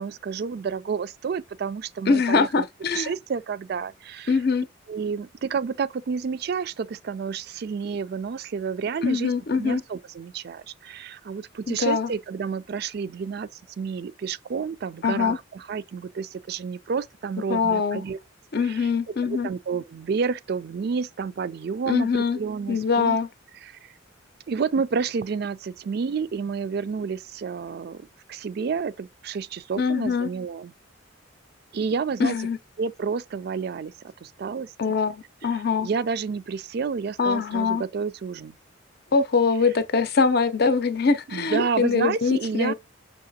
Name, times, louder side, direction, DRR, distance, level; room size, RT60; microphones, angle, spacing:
voice 1, 0.0-2.6 2.9-4.3 4.9-9.3 9.6-18.2 18.7-18.8 19.2-23.2 23.6-23.9 24.5-30.7 31.7-32.4 32.8-34.7 35.8-38.5 41.3-42.7, right 5 dB, 50° right, 0.3 m, -30 dB
voice 2, 2.1-3.2 4.3-4.7 9.0-9.8 11.7-12.1 15.0-15.4 17.5-18.0 18.5-19.5 21.9-22.4 22.7-23.3 29.8-30.3 32.2-32.6 34.8-35.9 37.2-37.8 39.1-42.7, left 5 dB, 50° left, 0.6 m, -23 dB
5.8 x 3.1 x 2.7 m
head